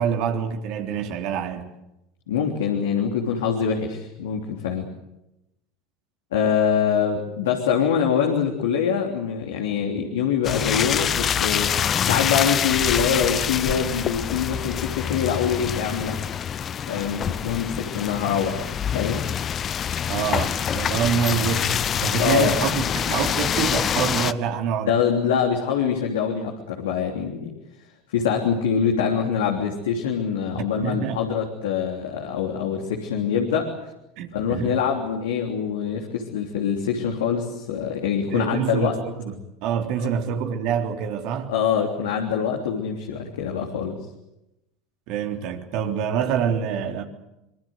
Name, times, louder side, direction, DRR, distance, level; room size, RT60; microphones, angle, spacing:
voice 1, 0.0-1.7 20.1-24.9 30.5-31.2 34.2-34.8 38.3-41.5 45.1-47.0, right 8 dB, 60° right, 3.4 m, -26 dB
voice 2, 2.3-4.9 6.3-11.7 12.0-16.2 16.9-18.6 18.9-19.2 22.2-22.5 24.9-27.5 28.1-33.7 34.3-39.0 40.0-40.1 41.5-44.0, left 7 dB, 75° left, 3.4 m, -24 dB
sound 1, 10.4-24.3, left 8 dB, 35° left, 0.9 m, -25 dB
24.5 x 23.5 x 8.0 m
hypercardioid pair, 80°, 0 cm